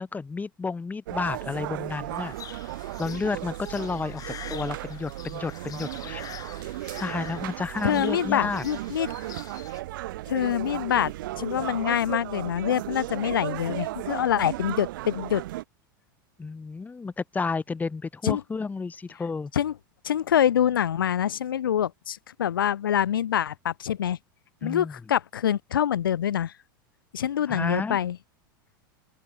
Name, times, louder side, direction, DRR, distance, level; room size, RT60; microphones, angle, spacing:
voice 1, 0.0-2.6 3.0-4.2 4.5-6.2 7.0-8.6 16.4-19.5 24.6-24.9 27.5-28.0, left 4 dB, 15° left, 1.6 m, -31 dB
sound 1, 1.1-15.6, right 16 dB, 70° right, 0.5 m, -35 dB
sound 2, 2.1-9.8, left 10 dB, 35° left, 3.1 m, -45 dB
voice 2, 7.8-9.1 10.3-15.4 18.2-18.4 19.5-19.7 20.0-24.2 24.6-26.5 27.1-28.2, left 10 dB, 85° left, 1.7 m, -25 dB
open air
hypercardioid pair, 100°, 11 cm